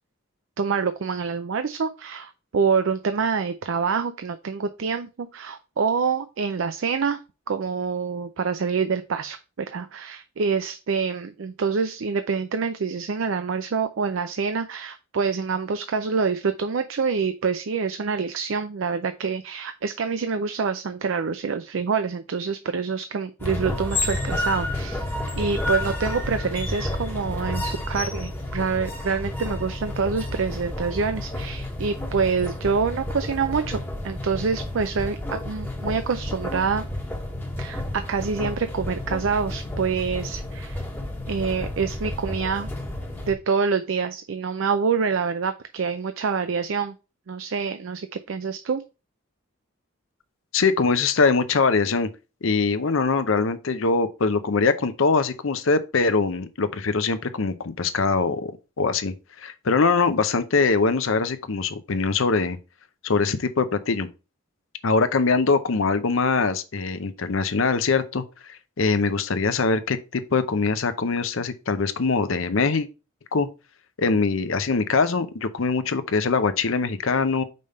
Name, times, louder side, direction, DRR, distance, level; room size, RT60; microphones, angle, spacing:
voice 1, 0.6-7.2 7.5-25.1 25.4-36.8 37.6-40.9 41.3-42.7 43.3-46.9 47.3-48.8, right 5 dB, 70° right, 0.4 m, -26 dB
sound 1, 23.4-43.3, left 1 dB, 10° left, 1.1 m, -31 dB
voice 2, 50.5-52.1 52.4-58.5 58.8-62.6 63.0-64.1 64.8-68.2 68.8-72.9 73.3-73.5 74.0-77.4, left 4 dB, 70° left, 0.7 m, -22 dB
5.3 x 3.4 x 5.3 m
head